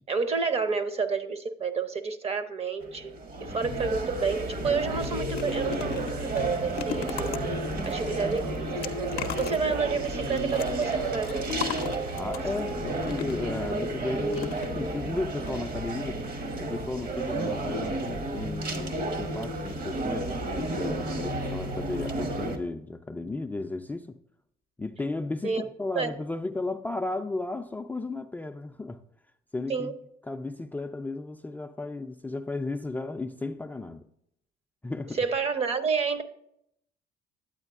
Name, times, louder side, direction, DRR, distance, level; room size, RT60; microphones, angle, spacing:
voice 1, 0.1-11.5 25.4-25.7 25.9-26.1 29.7-29.9 35.2-36.2, right 5 dB, 35° right, 0.7 m, -30 dB
sound 1, 2.8-22.6, right 1 dB, 60° right, 1.2 m, -32 dB
sound 2, 4.8-13.6 14.3-15.1 15.4-15.6 15.8-15.9, left 10 dB, 65° left, 0.5 m, -40 dB
Singing / Musical instrument, 5.3-15.3, right 2 dB, 75° right, 1.4 m, -48 dB
voice 2, 12.1-16.2 16.6-24.2 24.8-29.0 29.5-29.9 30.2-34.1 34.8-35.2, left 2 dB, 10° left, 0.3 m, -34 dB
8.9 x 8.8 x 2.4 m
cardioid pair, 110°, 17 cm